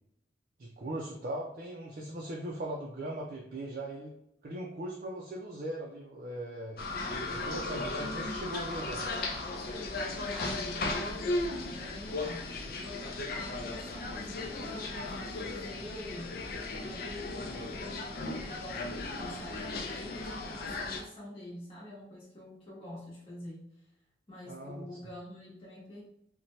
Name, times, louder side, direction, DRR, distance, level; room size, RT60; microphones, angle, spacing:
voice 1, 0.6-4.1 4.4-6.8 7.3-9.0 24.5-24.9, right 1 dB, 50° right, -2 dB, 0.4 m, -39 dB
sound 1, 6.8-21.0, left 2 dB, 55° left, 0.4 m, -36 dB
voice 2, 8.0-8.4 10.1-16.4 16.8-23.7 24.3-26.0, left 1 dB, 30° left, -8 dB, 0.9 m, -46 dB
2.7 x 2.1 x 3.0 m, 0.78 s
head